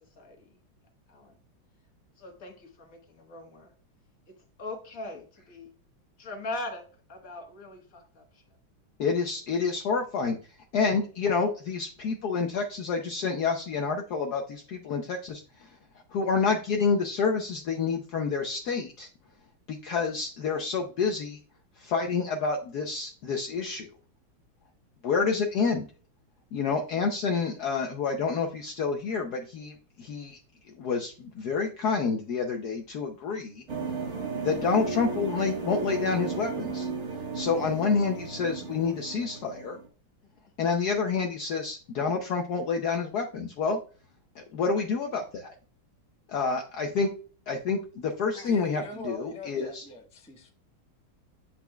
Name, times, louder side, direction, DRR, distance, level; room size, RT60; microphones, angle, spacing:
voice 1, 0.2-0.5 1.1-1.4 2.2-3.7 4.6-5.7 6.2-8.4, left 2 dB, 45° left, 1.6 m, -40 dB
voice 2, 9.0-10.4 10.7-15.8 16.1-19.1 19.7-21.4 21.8-23.9 25.0-25.9 26.5-30.4 30.8-33.6 34.4-36.9 37.3-39.8 40.6-43.8 44.4-45.5 46.3-47.1 47.5-49.9, left 5 dB, 65° left, 1.1 m, -28 dB
sound 1, 33.7-39.9, right 4 dB, 45° right, 1.0 m, -34 dB
voice 3, 48.3-50.5, left 2 dB, 5° left, 0.5 m, -42 dB
8.2 x 5.7 x 2.2 m
omnidirectional pair, 2.2 m